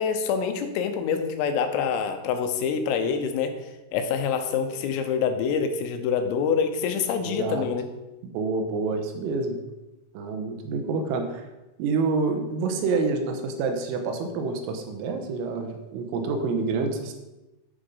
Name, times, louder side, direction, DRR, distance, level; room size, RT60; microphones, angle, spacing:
voice 1, 0.0-7.9, left 6 dB, 85° left, 7 dB, 3.6 m, -26 dB
voice 2, 8.2-9.6 10.2-11.5 11.8-17.1, right 4 dB, 85° right, 5 dB, 3.7 m, -27 dB
9.0 x 6.9 x 5.5 m, 1.0 s
omnidirectional pair, 5.8 m